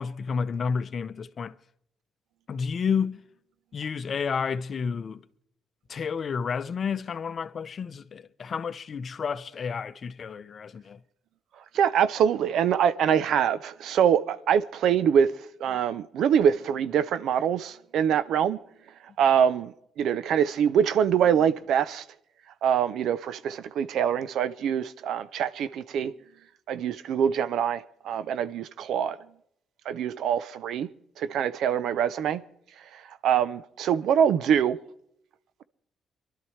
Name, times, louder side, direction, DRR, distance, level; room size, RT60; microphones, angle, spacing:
voice 1, 0.0-1.5 2.5-3.2 3.7-5.2 5.9-11.0, left 6 dB, 50° left, 0.7 m, -30 dB
voice 2, 11.7-15.3 15.6-18.6 19.2-22.0 22.6-26.1 26.7-29.2 29.9-30.9 31.2-32.4 32.9-34.8, right 8 dB, 75° right, 0.6 m, -24 dB
23.5 x 12.0 x 3.2 m
cardioid pair, 90°, 0 cm